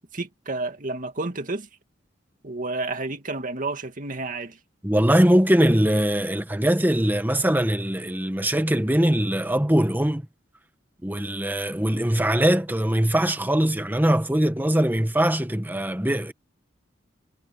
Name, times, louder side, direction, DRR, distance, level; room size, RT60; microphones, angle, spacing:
voice 1, 0.1-1.7 2.4-4.6, right 2 dB, 45° right, 2.2 m, -30 dB
voice 2, 4.8-10.2 11.0-16.3, right 1 dB, 10° right, 1.6 m, -21 dB
head